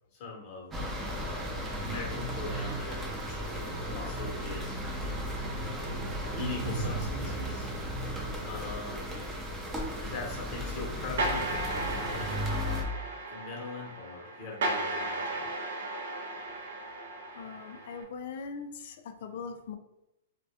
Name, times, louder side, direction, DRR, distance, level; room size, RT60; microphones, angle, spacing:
voice 1, 0.1-0.7 1.3-4.6 6.3-7.7 8.4-9.3 10.0-11.5 11.8-13.0 13.3-15.5, left 3 dB, 40° left, -1 dB, 0.8 m, -41 dB
sound 1, 0.7-12.8, equal, 15° right, 0.5 m, -35 dB
sound 2, 11.2-18.0, right 2 dB, 70° right, 0.5 m, -35 dB
voice 2, 17.3-19.8, left 5 dB, 60° left, 7 dB, 0.3 m, -41 dB
2.2 x 2.1 x 2.8 m, 0.90 s
hypercardioid pair, 150°, 0 cm